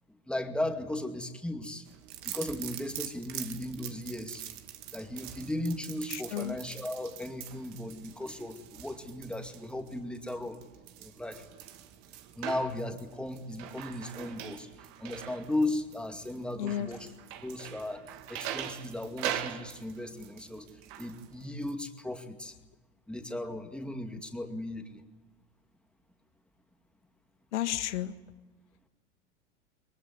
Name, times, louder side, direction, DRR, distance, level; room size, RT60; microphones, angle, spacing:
voice 1, 0.3-1.9 2.2-4.4 4.9-10.6 11.0-11.5 12.4-14.7 15.0-17.1 17.4-18.0 18.3-20.7 21.0-22.5 23.1-25.0, left 1 dB, 5° left, 5 dB, 2.3 m, -36 dB
sound 1, 1.9-21.7, right 11 dB, 50° right, 2.1 m, -43 dB
voice 2, 6.1-6.6 16.6-16.9 27.5-28.1, left 12 dB, 65° left, 10 dB, 1.7 m, -32 dB
22.5 x 21.0 x 9.6 m, 1.2 s
hypercardioid pair, 90°, 37 cm